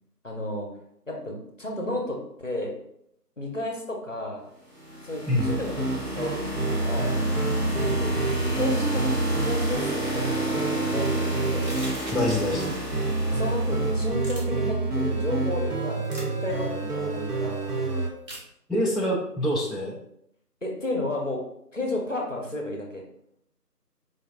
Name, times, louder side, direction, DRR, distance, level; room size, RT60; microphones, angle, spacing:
voice 1, 0.2-0.7 1.1-2.7 3.4-4.4 5.0-6.4 6.7-7.2 7.7-9.0 9.3-11.8 13.3-17.7 20.6-21.4 21.7-23.0, left 1 dB, 50° left, 0 dB, 0.6 m, -32 dB
sound 1, 4.7-14.5, equal, 40° right, 0.9 m, -32 dB
sound 2, 5.4-18.1, right 3 dB, 65° right, 0.8 m, -28 dB
sound 3, 11.6-12.9 14.2-14.4 16.0-16.3 18.3-18.5, right 1 dB, 90° right, 1.5 m, -40 dB
voice 2, 12.1-12.7 18.7-20.0, left 1 dB, ahead, -4 dB, 0.4 m, -25 dB
3.8 x 2.6 x 2.4 m, 0.74 s
figure-of-eight pair, 180°, 49 cm